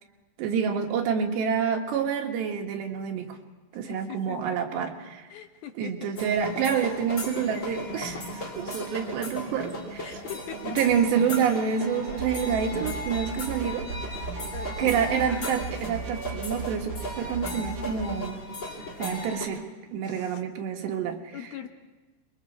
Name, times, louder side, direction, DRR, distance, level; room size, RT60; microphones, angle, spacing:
voice 1, 0.4-3.4 3.7-5.3 5.8-10.2 10.6-13.9 14.8-18.4 19.0-19.6 19.9-21.4, right 7 dB, 80° right, 2 dB, 3.8 m, -28 dB
voice 2, 3.8-4.6 5.3-6.1 10.0-10.8 14.5-15.0 20.0-20.4 21.3-21.7, left 9 dB, 70° left, 6 dB, 2.7 m, -41 dB
sound 1, 6.2-19.5, left 1 dB, 30° left, 2.9 m, -36 dB
sound 2, 12.1-18.1, right 5 dB, 60° right, 3.5 m, -38 dB
25.5 x 22.0 x 4.6 m, 1.2 s
omnidirectional pair, 4.9 m